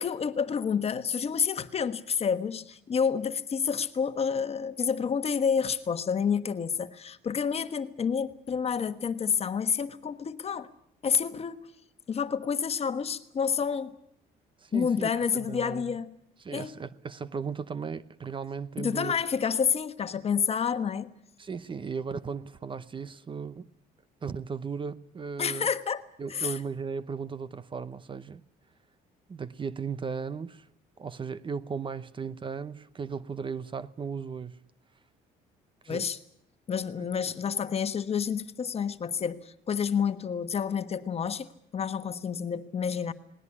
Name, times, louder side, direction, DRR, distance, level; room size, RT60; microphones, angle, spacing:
voice 1, 0.0-10.7 11.0-11.7 12.1-14.0 14.7-16.2 16.5-16.7 18.8-21.1 25.4-26.0 26.3-26.6 35.9-36.2 36.7-43.1, left 6 dB, 35° left, 1.3 m, -29 dB
voice 2, 14.6-16.0 16.4-19.2 21.4-23.7 24.2-25.7 26.2-28.4 29.3-30.7 31.0-34.6 35.8-36.0, right 5 dB, 30° right, 0.8 m, -36 dB
19.5 x 19.0 x 9.9 m
cardioid pair, 110°, 17 cm